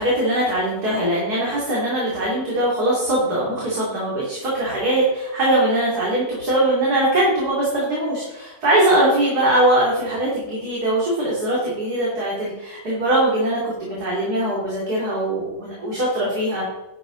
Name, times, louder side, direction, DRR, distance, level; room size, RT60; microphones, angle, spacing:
voice 1, 0.0-16.7, right 1 dB, 65° right, -6 dB, 3.4 m, -21 dB
11.5 x 10.5 x 3.9 m, 1.0 s
omnidirectional pair, 1.8 m